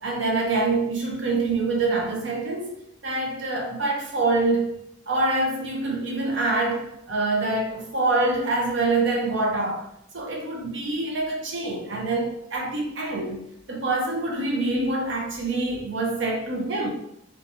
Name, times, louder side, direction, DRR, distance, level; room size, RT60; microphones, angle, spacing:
voice 1, 0.0-2.7 3.0-4.7 5.1-9.9 10.1-16.9, right 2 dB, 60° right, 0.6 m, -25 dB
2.7 x 2.2 x 2.7 m
head